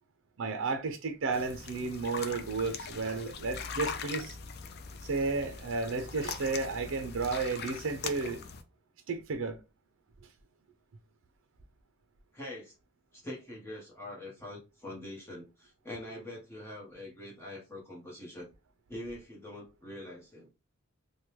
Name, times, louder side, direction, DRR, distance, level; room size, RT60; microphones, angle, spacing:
voice 1, 0.4-4.4 5.0-8.4 9.1-9.6, right 4 dB, 70° right, 0.5 m, -33 dB
sound 1, 1.3-8.6, left 5 dB, 50° left, 0.4 m, -41 dB
voice 2, 12.3-12.7 13.1-18.5 18.9-20.5, left 1 dB, 10° left, 0.9 m, -44 dB
3.3 x 2.2 x 2.9 m
head